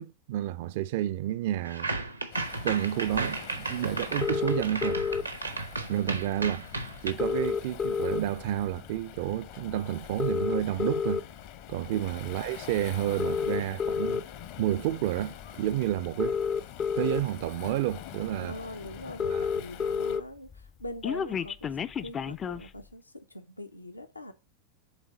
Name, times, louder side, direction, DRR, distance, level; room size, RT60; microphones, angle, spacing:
voice 1, 0.0-2.0 2.6-5.0 5.9-6.6 7.0-11.2 11.7-14.2 14.6-16.4 17.0-18.5 19.3-19.5, right 13 dB, 50° right, 0.4 m, -30 dB
sound 1, 1.6-7.1, right 3 dB, 80° right, 0.8 m, -34 dB
Waves surf, 2.3-20.2, left 11 dB, 50° left, 0.8 m, -45 dB
sound 2, 4.2-5.2 6.4-6.5 6.7-6.8 7.0-8.5 9.0-9.2 10.0-11.2 11.9-12.1 13.0-14.2 15.4-15.5 16.0-17.2 17.9-18.0 18.3-18.4 18.6-18.7 18.9-20.2 20.5-22.7, left 6 dB, 25° left, 0.4 m, -29 dB
voice 2, 18.4-24.3, left 1 dB, 85° left, 0.8 m, -43 dB
8.2 x 3.6 x 5.2 m
figure-of-eight pair, 90°, 0 cm